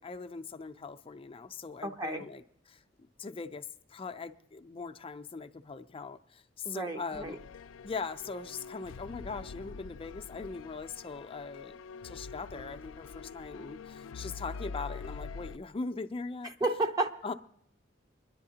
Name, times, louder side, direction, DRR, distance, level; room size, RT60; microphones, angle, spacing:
voice 1, 0.0-2.8 3.2-7.4 7.8-11.8 12.0-16.5 17.2-17.3, left 4 dB, 30° left, 8 dB, 0.5 m, -40 dB
voice 2, 1.8-2.2 6.6-7.3 16.6-17.1, right 2 dB, 20° right, 5 dB, 0.6 m, -31 dB
sound 1, 7.1-15.6, left 5 dB, 90° left, 0.4 m, -45 dB
23.5 x 10.5 x 2.8 m, 0.74 s
head